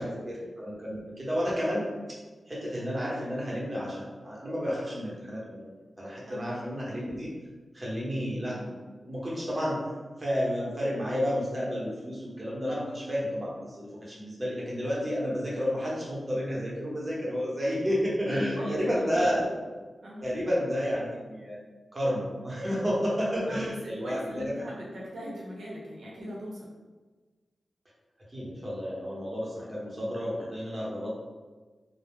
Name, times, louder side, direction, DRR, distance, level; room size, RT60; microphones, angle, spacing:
voice 1, 0.0-1.9 2.5-5.7 6.0-7.3 7.7-8.8 9.0-9.8 10.2-19.5 20.2-21.6 21.9-24.5 28.3-31.2, equal, 35° right, -5 dB, 0.9 m, -31 dB
voice 2, 6.3-6.6 18.3-19.4 20.0-20.3 23.4-23.7 24.0-26.7, equal, 90° right, -5 dB, 0.7 m, -40 dB
2.3 x 2.0 x 3.4 m, 1.3 s
cardioid pair, 60°, 0 cm